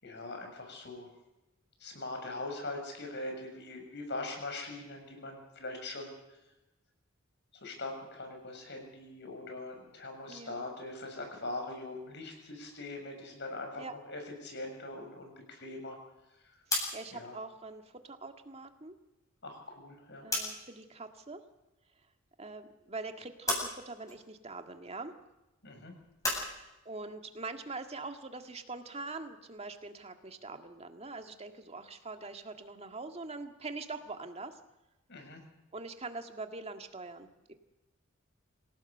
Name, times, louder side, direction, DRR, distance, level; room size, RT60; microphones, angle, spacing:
voice 1, 0.0-1.1 1.8-6.4 7.5-16.0 16.4-16.6 17.1-17.4 19.4-20.3 25.6-25.9 35.1-35.4, left 2 dB, 55° left, 4 dB, 7.0 m, -42 dB
voice 2, 10.3-10.7 13.8-14.0 16.7-19.0 20.2-21.4 22.4-25.1 26.5-34.6 35.7-37.5, right 3 dB, 30° right, 6 dB, 1.9 m, -43 dB
sound 1, 16.5-20.8 21.0-22.1 22.5-26.4, left 2 dB, 15° left, 7.9 m, -38 dB
27.5 x 17.0 x 6.7 m, 0.98 s
head